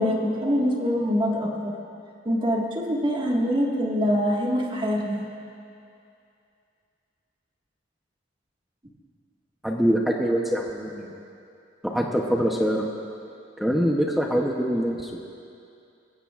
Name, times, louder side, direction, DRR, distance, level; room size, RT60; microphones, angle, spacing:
voice 1, 0.0-1.7 2.3-5.2, equal, 25° right, -2 dB, 1.8 m, -24 dB
voice 2, 9.6-11.1 11.8-12.9 13.6-15.2, equal, ahead, -1 dB, 0.8 m, -24 dB
22.0 x 15.5 x 2.5 m, 2.5 s
head